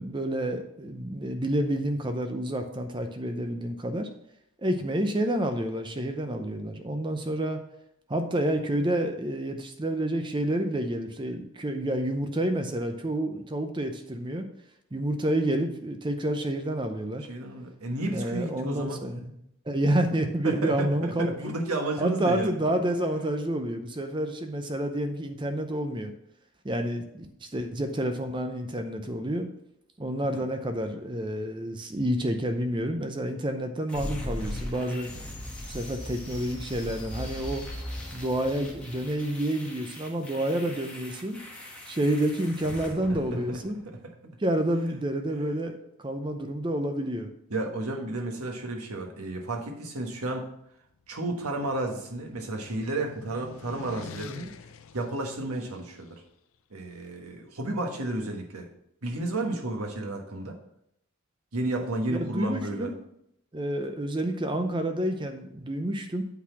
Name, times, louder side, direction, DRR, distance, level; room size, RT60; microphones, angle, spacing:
voice 1, 0.0-4.1 4.6-7.6 8.1-14.5 14.9-17.3 18.1-19.3 19.7-21.5 22.0-26.1 26.6-29.5 30.0-35.1 35.7-37.6 38.1-41.4 41.9-43.8 44.4-47.3 62.1-63.0 63.5-66.2, right 1 dB, 20° right, 6 dB, 0.6 m, -29 dB
voice 2, 17.3-19.0 20.4-22.6 30.3-30.4 43.1-43.6 47.5-50.5 51.1-54.5 54.9-56.2 56.7-58.7 59.0-60.5 61.5-62.9, right 2 dB, 85° right, 2 dB, 1.4 m, -32 dB
sound 1, 33.9-43.9, left 1 dB, 5° left, 1.3 m, -39 dB
sound 2, 50.9-56.1, left 4 dB, 65° left, 0.5 m, -47 dB
8.5 x 4.1 x 5.9 m, 0.76 s
head